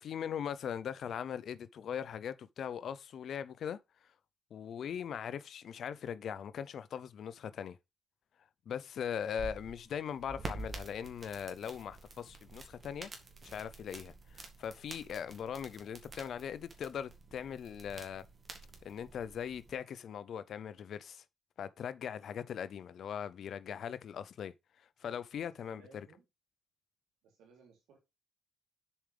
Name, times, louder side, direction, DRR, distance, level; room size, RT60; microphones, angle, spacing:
voice 1, 0.0-4.1 4.5-7.8 8.7-13.1 13.4-18.2 18.8-21.2 21.6-26.1, left 8 dB, 65° left, 0.5 m, -40 dB
sound 1, 9.1-19.8, right 2 dB, 35° right, 2.0 m, -49 dB
voice 2, 25.3-26.2 27.2-28.0, right 4 dB, 90° right, 3.4 m, -62 dB
7.1 x 4.9 x 3.3 m
cardioid pair, 90°, 0 cm